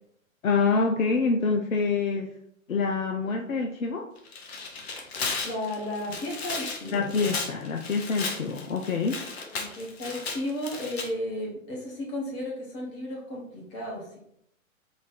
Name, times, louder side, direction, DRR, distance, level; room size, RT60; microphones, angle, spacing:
voice 1, 0.4-2.3 2.7-4.1 6.9-9.2, left 4 dB, 70° left, 3 dB, 0.6 m, -26 dB
Tearing, 4.2-11.1, left 4 dB, 45° left, 0.8 m, -35 dB
voice 2, 5.4-7.0 9.5-14.2, left 1 dB, 20° left, -2 dB, 0.9 m, -34 dB
4.0 x 2.4 x 4.0 m, 0.73 s
figure-of-eight pair, 115°, 42 cm